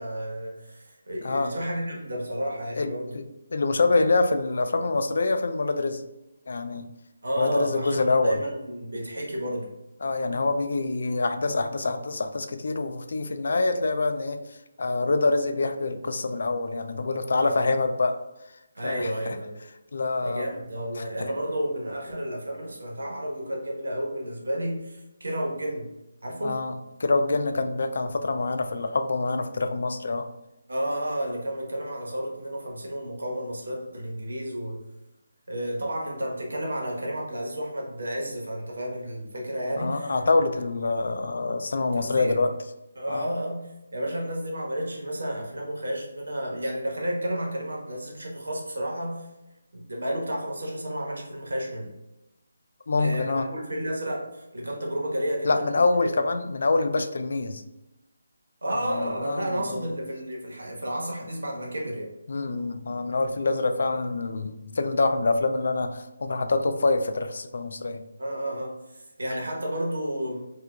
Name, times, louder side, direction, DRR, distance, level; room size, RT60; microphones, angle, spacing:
voice 1, 0.0-3.2 7.2-9.7 17.4-17.7 18.7-19.6 20.2-25.9 26.2-26.6 30.7-34.8 35.5-40.1 41.7-42.3 42.9-49.3 49.7-51.9 53.0-55.8 58.6-62.1 68.2-70.5, equal, 90° right, -1 dB, 1.1 m, -31 dB
voice 2, 2.8-3.2 3.5-6.0 6.5-6.9 7.4-8.4 10.0-14.4 14.8-18.2 18.8-19.4 19.9-20.5 21.2-21.3 26.4-30.3 39.8-42.5 43.1-43.3 52.9-53.5 55.4-57.6 58.9-59.9 62.3-68.0, left 3 dB, 65° left, 8 dB, 0.3 m, -25 dB
4.7 x 2.4 x 2.3 m, 0.96 s
hypercardioid pair, 165°, 0 cm